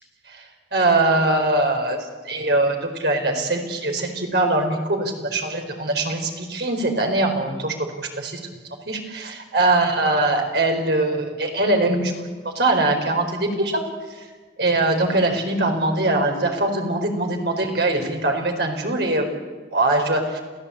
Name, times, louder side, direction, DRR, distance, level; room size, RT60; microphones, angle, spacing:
voice 1, 0.7-2.0 2.2-8.4 8.9-12.1 12.4-13.8 14.2-14.3 14.6-19.3 19.7-20.4, right 2 dB, 65° right, 3 dB, 4.6 m, -22 dB
28.5 x 16.0 x 8.7 m, 1.4 s
head